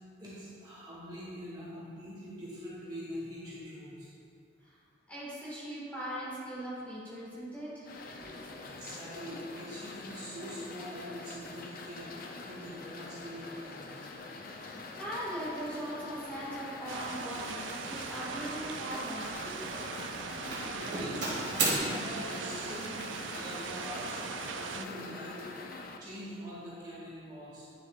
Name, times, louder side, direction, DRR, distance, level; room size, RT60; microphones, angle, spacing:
voice 1, 0.2-4.1 8.4-12.1 12.4-14.0 20.5-24.2 24.5-25.4 26.0-27.7, equal, 25° right, -8 dB, 1.5 m, -43 dB
voice 2, 5.1-7.9 8.2-8.5 14.3-19.7, right 1 dB, 10° left, -9 dB, 1.7 m, -40 dB
sound 1, 7.8-26.0, left 3 dB, 50° left, 0.5 m, -44 dB
Doorbell, 15.5-15.7 16.3-16.6 16.9-17.3 18.3-19.3 19.6-20.1 20.5-21.8, right 3 dB, 65° right, 1.7 m, -35 dB
sound 2, 16.9-24.9, right 6 dB, 85° right, 0.4 m, -40 dB
9.2 x 6.9 x 2.4 m, 2.4 s
head